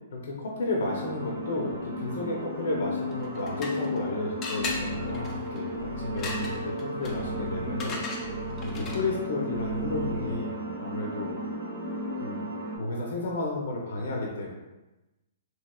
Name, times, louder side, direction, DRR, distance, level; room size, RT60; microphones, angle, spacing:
voice 1, 0.1-8.0 8.7-11.4 12.2-12.4 12.8-14.5, left 2 dB, 70° left, -1 dB, 0.6 m, -32 dB
sound 1, 0.8-12.8, equal, 50° right, 0.8 m, -35 dB
sound 2, 3.1-4.0 4.4-9.2, left 3 dB, 20° left, 0.4 m, -38 dB
sound 3, 4.6-10.3, left 1 dB, 85° right, 0.9 m, -39 dB
3.0 x 2.9 x 2.3 m, 1.0 s
hypercardioid pair, 150°, 0 cm